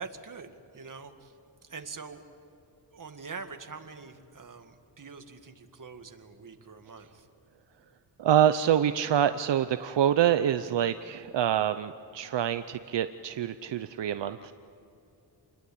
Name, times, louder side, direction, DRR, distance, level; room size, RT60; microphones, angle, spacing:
voice 1, 0.0-1.3 1.6-2.2 2.9-7.3, right 4 dB, 45° right, 7 dB, 2.0 m, -44 dB
voice 2, 8.2-14.5, right 10 dB, 80° right, 11 dB, 0.8 m, -26 dB
28.0 x 21.0 x 8.7 m, 2.8 s
cardioid pair, 80°, 43 cm